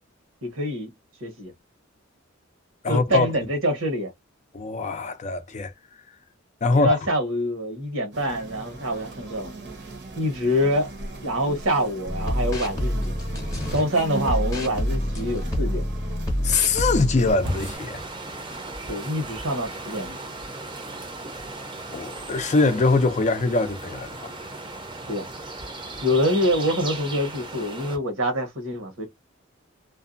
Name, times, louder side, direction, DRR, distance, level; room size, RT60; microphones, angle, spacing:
voice 1, 0.4-0.9 1.2-1.5 2.9-4.1 6.6-9.5 10.2-10.9 11.2-13.1 13.7-15.8 18.9-20.2 25.1-25.3 26.0-29.1, equal, 85° right, 1.2 m, -25 dB
voice 2, 2.8-3.3 4.5-5.7 6.6-7.0 16.4-18.0 21.9-24.3, left 3 dB, 35° left, 0.4 m, -22 dB
sound 1, 8.1-17.8, right 3 dB, 60° right, 0.8 m, -39 dB
sound 2, 12.1-13.8 14.2-17.3, equal, 15° left, 0.8 m, -27 dB
sound 3, 17.3-28.0, right 2 dB, 25° right, 0.6 m, -36 dB
2.6 x 2.1 x 2.5 m
head